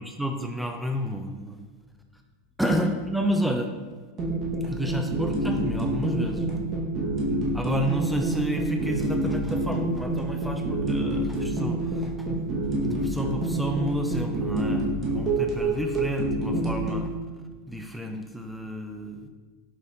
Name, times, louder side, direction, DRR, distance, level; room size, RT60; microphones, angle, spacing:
voice 1, 0.0-1.6 2.6-3.7 4.6-6.6 7.5-12.5 12.8-17.1 17.7-19.3, equal, ahead, 4 dB, 0.3 m, -30 dB
sound 1, 4.2-17.1, right 2 dB, 30° right, 1.0 m, -27 dB
5.0 x 2.5 x 3.9 m, 1.3 s
supercardioid pair, 130°, 0 cm